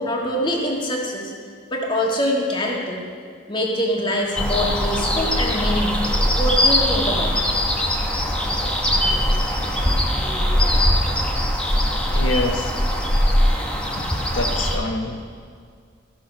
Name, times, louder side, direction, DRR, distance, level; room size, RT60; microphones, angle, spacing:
voice 1, 0.0-1.3 1.7-3.0 3.5-7.5, left 1 dB, 25° left, -1 dB, 1.6 m, -24 dB
sound 1, 4.3-14.8, equal, 5° left, 1.1 m, -21 dB
voice 2, 12.1-12.7 14.0-15.1, left 2 dB, 75° left, 5 dB, 1.0 m, -26 dB
14.5 x 6.5 x 5.9 m, 2.2 s
head